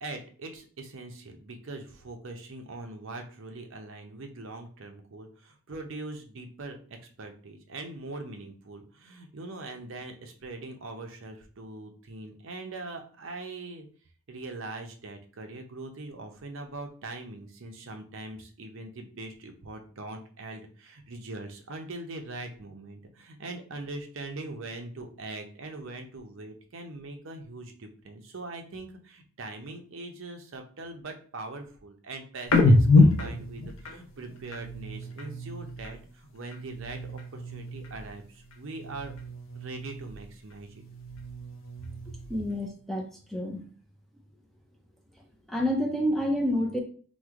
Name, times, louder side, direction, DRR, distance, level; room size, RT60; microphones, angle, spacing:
voice 1, 0.0-13.9 14.3-39.1 39.5-40.8 42.0-42.2, right 2 dB, 60° right, 4 dB, 0.6 m, -42 dB
sound 1, 32.5-36.0 36.4-38.2 38.5-40.3 40.7-42.5, left 2 dB, 65° left, 0.6 m, -27 dB
voice 2, 42.3-43.6 45.5-46.8, equal, ahead, 1 dB, 0.4 m, -28 dB
3.1 x 2.1 x 3.5 m, 0.43 s
head